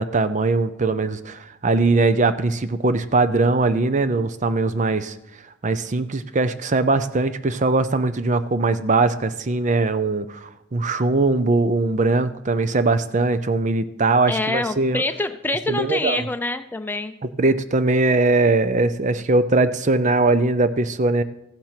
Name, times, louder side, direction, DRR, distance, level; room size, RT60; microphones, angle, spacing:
voice 1, 0.0-5.1 5.6-15.0 15.7-16.3 17.2-21.2, right 3 dB, 35° right, 13 dB, 0.6 m, -20 dB
voice 2, 14.3-17.1, left 2 dB, 10° left, 7 dB, 0.6 m, -25 dB
14.5 x 7.3 x 5.8 m, 0.87 s
head